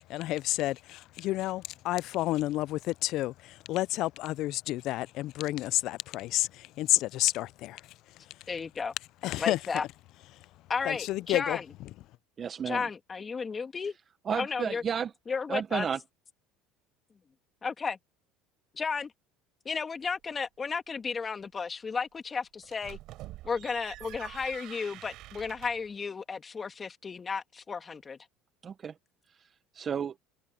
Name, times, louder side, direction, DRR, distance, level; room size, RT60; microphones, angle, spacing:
voice 1, 0.1-7.8 9.2-9.6 10.9-11.6, left 16 dB, 60° left, 0.5 m, -30 dB
voice 2, 8.5-8.9 9.4-9.9 10.7-11.7 12.7-14.0 14.3-14.8 15.3-15.9 17.6-18.0 18.7-19.1 19.6-23.0 23.4-28.2, left 5 dB, 25° left, 2.5 m, -33 dB
voice 3, 12.4-12.9 14.2-15.1 15.5-16.0 28.6-29.0 29.3-30.2, right 7 dB, 35° right, 1.0 m, -33 dB
sound 1, 22.6-25.9, right 16 dB, 60° right, 5.5 m, -46 dB
open air
supercardioid pair, 100°, 0 cm